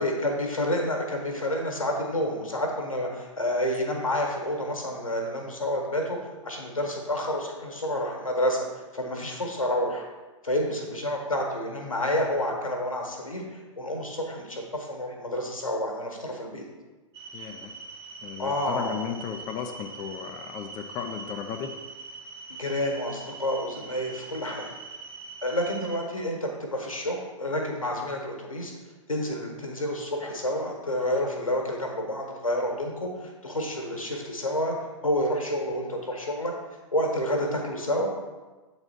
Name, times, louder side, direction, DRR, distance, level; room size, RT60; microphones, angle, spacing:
voice 1, 0.0-8.7 8.9-10.0 10.4-16.6 18.4-19.2 22.5-24.7 25.4-28.7 29.1-34.7 35.0-36.5 36.9-38.1, left 1 dB, 90° left, 1 dB, 1.5 m, -29 dB
sound 1, 17.1-26.0, right 4 dB, 50° right, 1.3 m, -42 dB
voice 2, 17.3-17.7 18.2-21.7, left 8 dB, 25° left, 4 dB, 0.5 m, -35 dB
7.7 x 4.2 x 4.3 m, 1.2 s
figure-of-eight pair, 105°, 17 cm